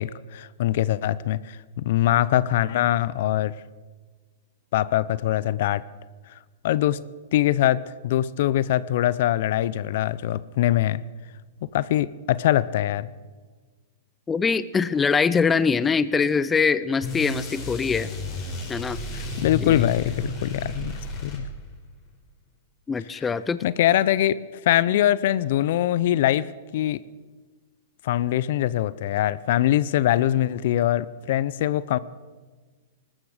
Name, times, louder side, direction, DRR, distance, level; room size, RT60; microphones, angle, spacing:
voice 1, 0.0-3.5 4.7-5.8 6.6-7.0 7.3-11.0 11.7-13.1 19.1-21.5 23.6-24.4 24.6-26.5 26.7-27.0 28.0-32.0, left 13 dB, 60° left, 19 dB, 0.5 m, -23 dB
voice 2, 14.3-18.1 18.7-19.0 19.6-19.8 22.9-23.6, left 5 dB, 15° left, 15 dB, 0.5 m, -23 dB
sound 1, 17.0-21.8, left 3 dB, 30° left, 5.1 m, -32 dB
19.0 x 13.5 x 5.0 m, 1.4 s
hypercardioid pair, 125°, 0 cm